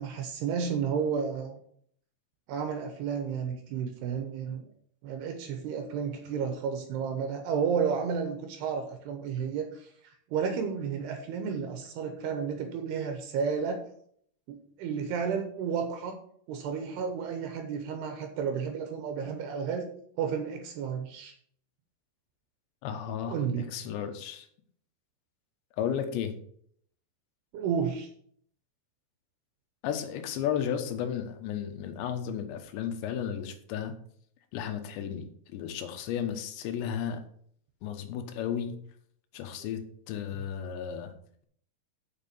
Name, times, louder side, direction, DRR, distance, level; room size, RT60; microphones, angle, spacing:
voice 1, 0.0-1.6 2.5-4.7 5.0-9.9 10.3-13.8 14.5-16.2 16.5-19.9 20.2-21.3 23.3-23.7 27.5-28.1, right 6 dB, 75° right, 5 dB, 2.9 m, -32 dB
voice 2, 22.8-23.4 23.7-24.5 25.8-26.3 29.8-33.9 34.5-37.2 37.8-38.7 39.3-41.1, left 8 dB, 90° left, 7 dB, 3.3 m, -33 dB
7.3 x 6.6 x 6.7 m, 0.63 s
omnidirectional pair, 4.9 m